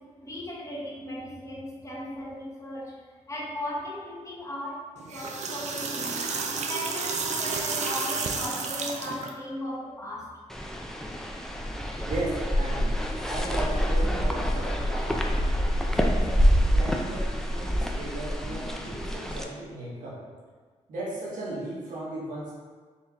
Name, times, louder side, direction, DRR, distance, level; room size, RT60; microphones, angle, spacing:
voice 1, 0.0-6.2 6.6-10.3, left 1 dB, 25° left, -5 dB, 1.3 m, -37 dB
sound 1, 5.0-9.3, right 4 dB, 65° right, 0.5 m, -31 dB
sound 2, 10.5-19.4, equal, 5° left, 0.5 m, -26 dB
voice 2, 12.1-12.9 13.3-16.3 16.7-20.2 20.9-22.5, right 2 dB, 85° right, -6 dB, 1.4 m, -36 dB
4.4 x 3.0 x 3.5 m, 1.5 s
cardioid pair, 70°, 13 cm